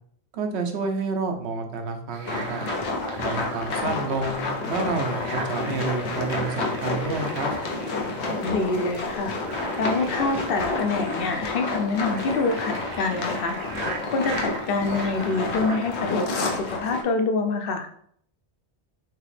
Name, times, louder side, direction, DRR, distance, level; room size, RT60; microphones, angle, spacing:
voice 1, 0.3-2.6 3.2-7.5, right 4 dB, 85° right, 4 dB, 1.0 m, -29 dB
sound 1, 2.1-15.9, right 5 dB, 60° right, 0.7 m, -40 dB
sound 2, 2.3-17.0, left 3 dB, 80° left, 1.1 m, -30 dB
sound 3, 5.0-10.7, equal, ahead, 0.6 m, -40 dB
voice 2, 8.4-9.4 9.8-13.6 14.1-17.9, left 3 dB, 60° left, 5 dB, 0.8 m, -26 dB
4.7 x 2.9 x 3.2 m, 0.64 s
omnidirectional pair, 1.1 m